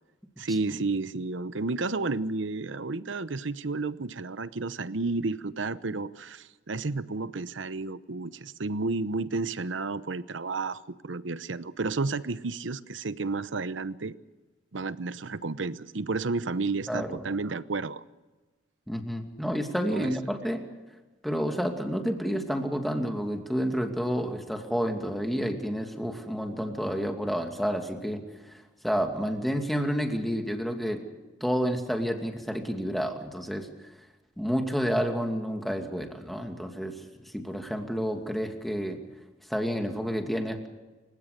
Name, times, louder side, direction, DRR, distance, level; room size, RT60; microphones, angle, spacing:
voice 1, 0.4-14.2 14.7-18.0 19.9-20.1, right 3 dB, 85° right, 15 dB, 0.9 m, -31 dB
voice 2, 18.9-20.7 21.2-28.2 28.8-31.0 31.4-33.7 34.4-37.0 37.2-39.0 39.5-40.7, equal, ahead, 4 dB, 2.4 m, -29 dB
29.0 x 16.5 x 6.8 m, 1.2 s
head